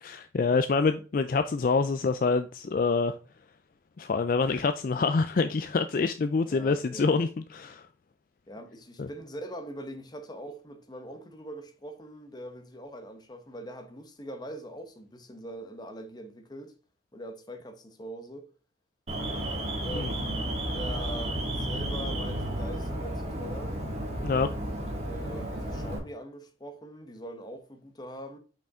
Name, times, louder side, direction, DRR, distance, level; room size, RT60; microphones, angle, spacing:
voice 1, 0.0-3.2 4.0-7.9 9.0-9.1 19.9-20.1 24.2-24.5, left 4 dB, 50° left, 0.4 m, -26 dB
voice 2, 6.4-7.2 8.5-16.7 17.1-18.5 19.8-23.8 25.1-28.4, equal, 25° left, 1.0 m, -42 dB
Alarm, 19.1-26.0, right 1 dB, 35° right, 2.1 m, -32 dB
5.7 x 5.2 x 3.6 m
head